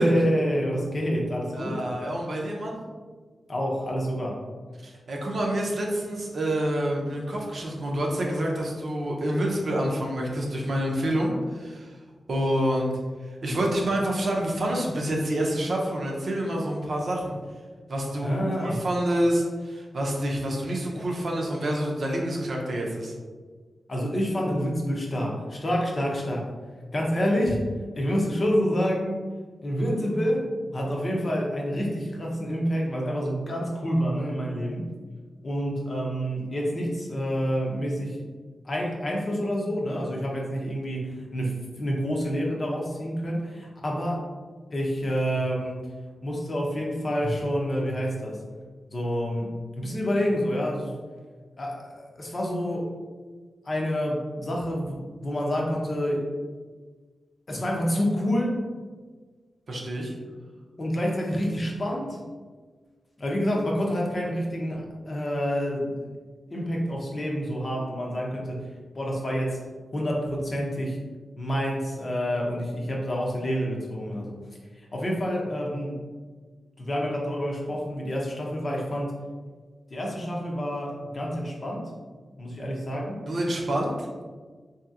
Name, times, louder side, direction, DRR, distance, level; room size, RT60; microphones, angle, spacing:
voice 1, 0.0-1.8 3.5-4.4 18.2-18.8 23.9-26.5 26.9-27.6 27.9-29.2 29.6-30.5 30.7-34.9 35.4-38.2 38.6-44.2 44.7-45.9 46.2-48.4 48.9-50.9 51.6-52.9 53.6-56.3 57.5-58.6 60.8-62.2 63.2-66.1 66.5-68.7 68.9-69.6 69.9-71.0 71.4-74.4 74.7-76.0 76.8-79.1 79.9-81.9 82.4-83.3, equal, 45° left, -2 dB, 0.7 m, -28 dB
voice 2, 1.5-2.8 4.8-12.0 12.3-12.9 13.4-17.4 17.9-23.1 59.7-60.1 83.3-83.9, right 1 dB, 65° right, -2 dB, 0.6 m, -27 dB
2.8 x 2.8 x 2.4 m, 1.5 s
cardioid pair, 55°, 0 cm